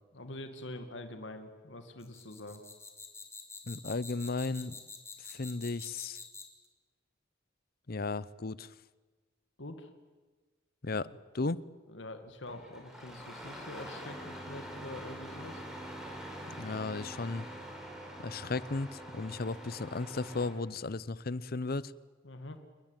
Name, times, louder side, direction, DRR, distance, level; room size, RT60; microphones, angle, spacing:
voice 1, 0.1-2.6 9.6-9.9 11.4-11.5 11.9-15.6 22.2-22.6, left 1 dB, 70° left, 7 dB, 2.2 m, -45 dB
sound 1, 2.0-6.6, left 4 dB, 15° left, 3.3 m, -47 dB
voice 2, 3.7-4.8 5.2-6.2 7.9-8.7 10.8-11.1 11.3-11.6 16.5-17.5 18.2-21.9, left 3 dB, 50° left, 19 dB, 0.8 m, -35 dB
Engine starting, 12.4-20.6, equal, 5° right, 5.4 m, -45 dB
29.0 x 21.5 x 9.1 m, 1.3 s
head